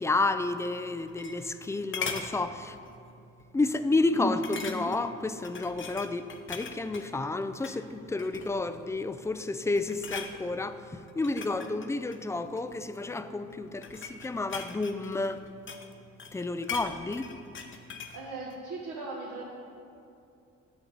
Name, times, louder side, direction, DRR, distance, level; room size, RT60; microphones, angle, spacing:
voice 1, 0.0-2.8 3.5-15.4 16.3-17.3, left 2 dB, 10° left, 11 dB, 0.3 m, -30 dB
sound 1, 0.8-1.6 1.9-2.3 2.9-3.1 3.4-3.5 4.4-5.1 5.4-7.1 7.5-7.8 8.2-8.7 9.2-9.5 9.8-10.3 11.1-12.7 13.5-15.9 16.2-18.2 18.5-18.6, left 6 dB, 40° left, 0.8 m, -40 dB
voice 2, 18.1-19.5, right 3 dB, 80° right, -5 dB, 1.5 m, -39 dB
10.0 x 7.2 x 4.0 m, 2.6 s
cardioid pair, 90°, 30 cm